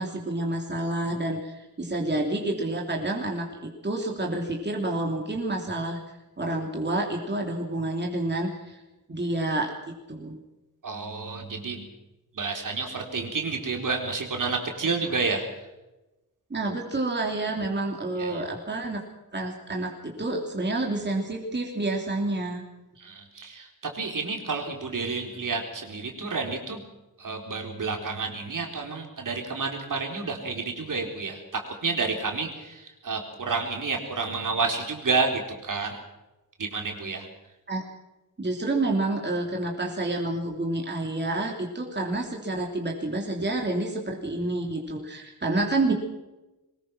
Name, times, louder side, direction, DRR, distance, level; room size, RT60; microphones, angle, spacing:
voice 1, 0.0-6.0 6.4-8.8 9.1-9.7 10.1-10.4 16.5-19.0 19.3-22.6 37.7-37.8 38.4-45.9, right 2 dB, 30° right, 0 dB, 3.1 m, -29 dB
voice 2, 10.8-11.9 12.3-15.5 18.2-18.5 23.0-26.8 27.2-36.0 36.6-37.3, right 4 dB, 60° right, 2 dB, 4.0 m, -30 dB
23.0 x 20.0 x 6.1 m, 1.0 s
wide cardioid pair, 145°, 35 cm